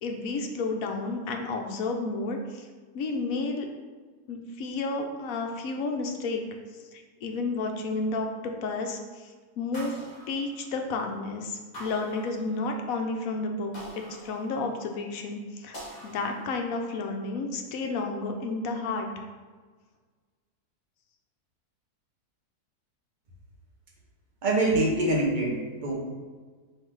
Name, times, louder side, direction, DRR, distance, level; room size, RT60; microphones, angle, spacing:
voice 1, 0.0-2.7 2.9-3.7 4.3-6.4 6.9-10.0 10.3-15.8 16.0-19.1, left 3 dB, 70° left, 3 dB, 0.9 m, -31 dB
sound 1, 9.7-11.1 11.7-12.9 13.7-15.0 15.7-16.9, equal, 30° left, 1.1 m, -45 dB
voice 2, 24.4-25.9, right 2 dB, 45° right, -2 dB, 0.7 m, -25 dB
3.8 x 2.6 x 4.5 m, 1.5 s
omnidirectional pair, 1.6 m